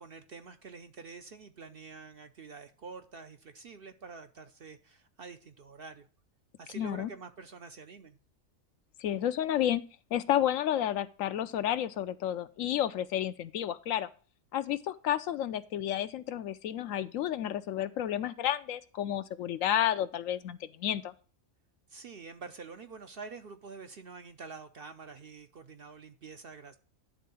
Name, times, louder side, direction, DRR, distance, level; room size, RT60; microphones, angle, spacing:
voice 1, 0.0-6.1 6.6-8.2 21.9-26.8, right 4 dB, 55° right, 0.7 m, -47 dB
voice 2, 6.8-7.1 9.0-9.8 10.1-14.1 14.5-21.1, left 11 dB, 75° left, 0.9 m, -31 dB
10.5 x 3.7 x 6.9 m
omnidirectional pair, 1.4 m